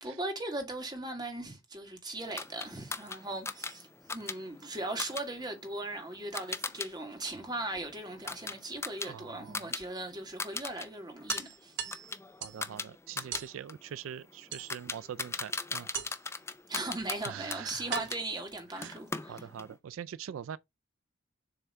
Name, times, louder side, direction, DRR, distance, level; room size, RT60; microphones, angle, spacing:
voice 1, 0.0-11.8 16.7-19.4, right 2 dB, 20° right, 2.0 m, -38 dB
sound 1, 2.4-6.9 7.2-9.8 10.1-10.9 11.2-18.2 18.8-19.7, left 4 dB, 15° left, 0.5 m, -39 dB
sound 2, 7.3-8.3 9.8-9.9 10.3-10.4 10.7-10.8 11.3-12.7 13.3-13.6 14.5-15.1 15.9-16.4 17.2-17.3 17.9-19.3, right 7 dB, 65° right, 1.0 m, -40 dB
voice 2, 9.0-9.7 12.4-16.0 17.3-18.0 18.7-19.0 19.3-20.6, right 9 dB, 85° right, 0.3 m, -43 dB
7.1 x 3.4 x 4.2 m
head